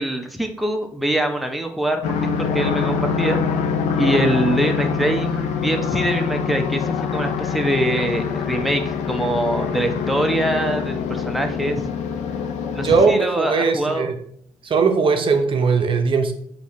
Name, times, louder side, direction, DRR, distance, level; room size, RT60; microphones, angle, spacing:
voice 1, 0.0-3.4 4.0-11.8 12.7-14.1, right 1 dB, ahead, 4 dB, 0.6 m, -24 dB
sound 1, 2.0-13.1, left 6 dB, 85° left, 0.4 m, -24 dB
voice 2, 12.8-14.2 14.6-16.3, right 4 dB, 50° right, 5 dB, 0.6 m, -19 dB
3.5 x 2.6 x 4.1 m, 0.67 s
cardioid pair, 70°, 11 cm